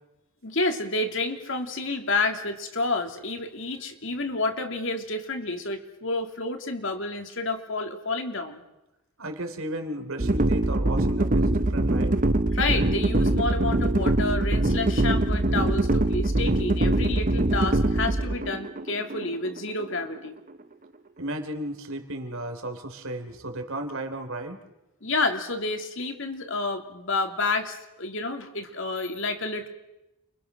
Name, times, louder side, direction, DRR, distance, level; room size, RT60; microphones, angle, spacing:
voice 1, 0.4-8.6 12.5-20.4 25.0-29.7, left 3 dB, 60° left, 5 dB, 2.9 m, -29 dB
voice 2, 9.2-12.2 21.2-24.6, right 1 dB, 70° right, 6 dB, 3.3 m, -34 dB
sound 1, 10.2-20.3, right 1 dB, 35° right, 0.9 m, -23 dB
30.0 x 25.0 x 6.3 m, 0.95 s
head